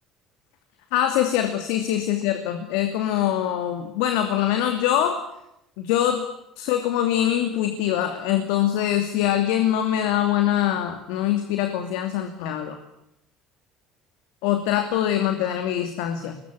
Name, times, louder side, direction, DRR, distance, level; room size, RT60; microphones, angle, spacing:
voice 1, 0.9-5.2 5.8-6.2 6.6-12.8 14.4-16.4, left 11 dB, 80° left, 7 dB, 2.7 m, -23 dB
22.5 x 21.5 x 10.0 m, 0.83 s
supercardioid pair, 80°, 0 cm